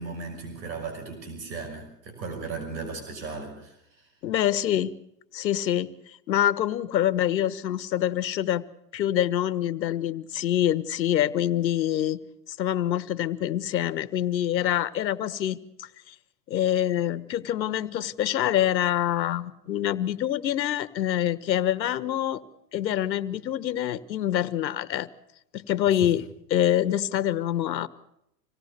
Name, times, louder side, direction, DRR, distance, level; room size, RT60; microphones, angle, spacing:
voice 1, 0.0-4.1 25.8-26.1, right 4 dB, 85° right, 4 dB, 6.1 m, -37 dB
voice 2, 4.2-5.0 5.3-8.6 8.9-12.2 12.5-16.1 16.5-22.4 22.7-25.1 25.5-26.2 26.5-27.9, left 11 dB, 90° left, 16 dB, 1.4 m, -26 dB
26.0 x 18.0 x 6.8 m, 0.81 s
hypercardioid pair, 120°, 50 cm